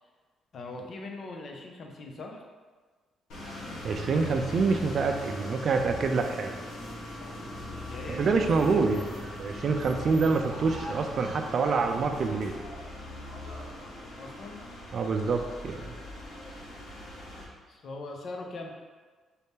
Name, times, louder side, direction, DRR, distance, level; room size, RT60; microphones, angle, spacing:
voice 1, 0.5-2.4 7.9-9.1 14.2-14.6 17.7-18.7, left 2 dB, 55° left, 1 dB, 0.6 m, -41 dB
sound 1, 3.3-17.4, left 1 dB, 85° left, 1.1 m, -41 dB
voice 2, 3.8-6.6 8.1-9.1 9.4-12.5 14.9-15.9, right 4 dB, 55° right, 5 dB, 0.4 m, -26 dB
sound 2, 4.9-12.0, left 1 dB, 15° right, 1.5 m, -46 dB
4.1 x 2.7 x 3.5 m, 1.4 s
cardioid pair, 90°, 0 cm